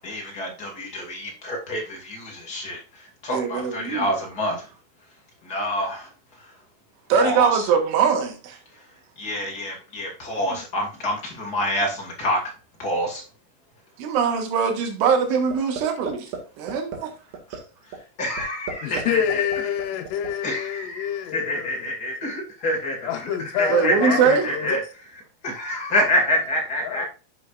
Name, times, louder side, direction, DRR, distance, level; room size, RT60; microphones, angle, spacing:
voice 1, 0.0-2.8 3.2-4.6 5.4-6.1 7.2-7.5 9.2-12.4 12.8-13.2 18.2-19.4 20.4-23.0 23.5-24.8 25.4-27.0, left 1 dB, 35° left, 1.6 m, -27 dB
voice 2, 3.3-4.1 7.1-8.6 10.5-10.6 14.0-17.1 23.7-24.6, right 6 dB, 80° right, 4.1 m, -22 dB
sound 1, 15.5-16.4 16.7-17.0 17.3-17.6 17.9-18.0 18.4-19.0 19.3-20.3, right 7 dB, 55° right, 3.1 m, -32 dB
voice 3, 18.8-21.8 23.0-24.8 26.8-27.1, left 9 dB, 85° left, 3.6 m, -27 dB
9.8 x 7.0 x 2.5 m
omnidirectional pair, 5.5 m